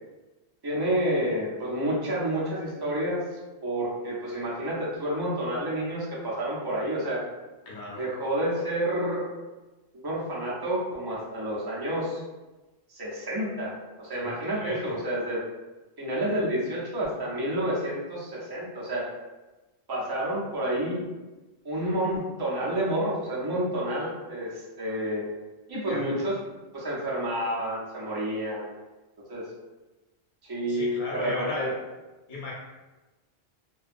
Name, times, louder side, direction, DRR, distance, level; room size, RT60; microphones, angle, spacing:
voice 1, 0.6-3.2 3.6-7.2 7.9-9.2 10.0-12.2 12.9-15.4 16.0-19.1 19.9-21.0 21.6-25.2 25.7-26.4 26.7-28.7 29.3-29.5 30.5-31.7, right 1 dB, 30° right, -6 dB, 0.5 m, -29 dB
voice 2, 7.7-8.0 14.2-15.0 25.9-26.2 30.7-31.7 32.3-32.5, left 2 dB, 50° left, -5 dB, 0.9 m, -36 dB
2.7 x 2.3 x 2.5 m, 1.1 s
omnidirectional pair, 1.1 m